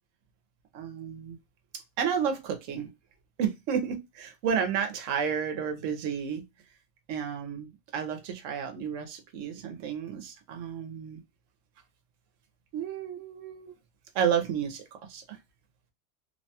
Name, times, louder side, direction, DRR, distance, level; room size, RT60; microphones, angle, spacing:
voice 1, 0.7-1.4 2.0-2.9 3.4-6.4 7.1-11.2 12.7-13.7 14.1-15.4, right 7 dB, 85° right, 5 dB, 1.0 m, -31 dB
2.9 x 2.2 x 2.7 m, 0.22 s
omnidirectional pair, 1.3 m